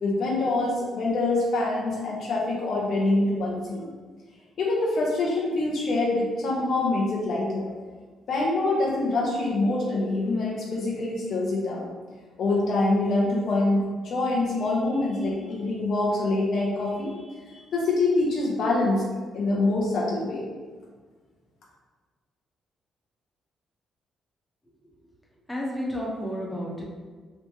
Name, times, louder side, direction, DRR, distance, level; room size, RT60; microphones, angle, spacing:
voice 1, 0.0-3.9 4.6-7.7 8.3-11.9 12.4-19.1 19.3-20.5, left 2 dB, 60° left, -4 dB, 0.7 m, -25 dB
voice 2, 25.5-26.8, equal, 10° left, -4 dB, 1.0 m, -31 dB
3.2 x 2.9 x 3.2 m, 1.5 s
cardioid pair, 90°, 0 cm